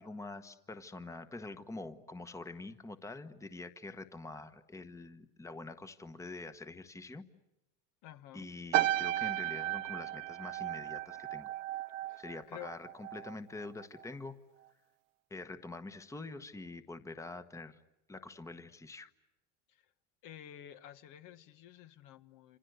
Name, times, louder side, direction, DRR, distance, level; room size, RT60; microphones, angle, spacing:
voice 1, 0.0-7.3 8.3-11.5 11.8-11.9 12.2-14.4 15.3-17.8 18.1-19.1, left 3 dB, 10° left, 11 dB, 1.3 m, -45 dB
voice 2, 8.0-8.5 12.1-12.2 12.5-12.7 19.7-19.8 20.2-22.6, left 12 dB, 55° left, 11 dB, 1.4 m, -51 dB
sound 1, 8.7-13.3 13.6-14.0, right 15 dB, 85° right, 0.9 m, -35 dB
27.5 x 27.0 x 8.0 m, 0.91 s
supercardioid pair, 110°, 38 cm